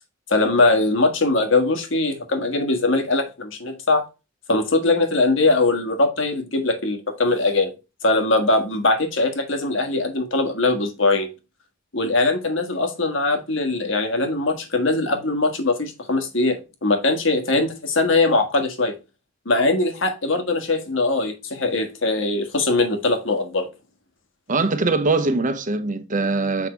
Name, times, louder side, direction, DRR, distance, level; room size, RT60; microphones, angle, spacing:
voice 1, 0.3-4.0 4.5-7.7 8.0-11.3 11.9-18.9 19.4-23.7, left 2 dB, 70° left, 1.6 m, -21 dB
voice 2, 24.5-26.7, right 3 dB, 40° right, 1.0 m, -22 dB
7.4 x 5.3 x 3.2 m
head